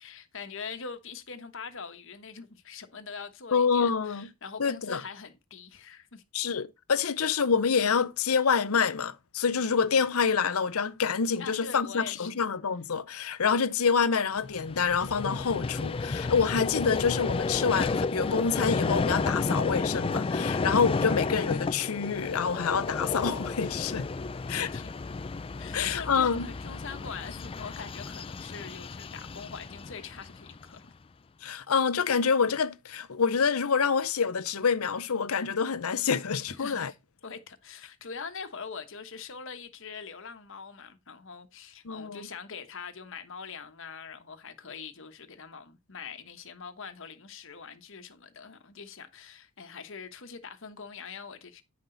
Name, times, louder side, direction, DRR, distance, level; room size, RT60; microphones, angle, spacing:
voice 1, 0.0-6.2 11.4-12.3 24.2-24.9 25.6-30.9 36.6-36.9 37.2-51.6, left 5 dB, 60° left, 1.2 m, -43 dB
voice 2, 3.5-4.3 4.6-5.0 6.3-24.1 24.5-24.7 25.7-26.5 31.4-36.9 41.8-42.2, left 6 dB, 85° left, 0.7 m, -27 dB
Vehicle, 14.4-30.8, left 3 dB, 25° left, 0.4 m, -32 dB
9.6 x 5.9 x 3.9 m
head